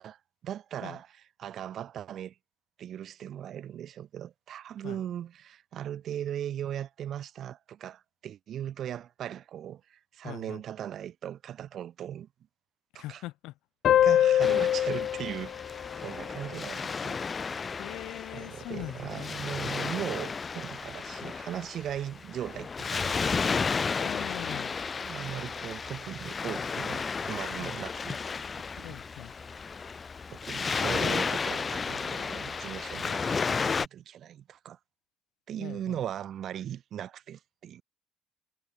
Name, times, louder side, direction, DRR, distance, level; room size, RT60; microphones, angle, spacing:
voice 1, 0.0-2.4 2.8-12.3 12.9-13.2 14.0-17.2 18.3-23.6 25.0-28.2 28.8-29.0 30.3-34.8 35.5-37.8, right 10 dB, 50° right, 2.3 m, -38 dB
voice 2, 10.2-10.6 12.9-13.5 14.4-14.6 17.8-19.3 20.2-20.3 24.0-24.8 27.6-27.8 28.8-29.3 35.6-36.0, left 18 dB, 80° left, 2.9 m, -42 dB
sound 1, 13.8-17.0, left 11 dB, 50° left, 0.5 m, -26 dB
Waves surf, 14.4-33.9, left 5 dB, 25° left, 2.1 m, -33 dB
cardioid pair, 130°, 0 cm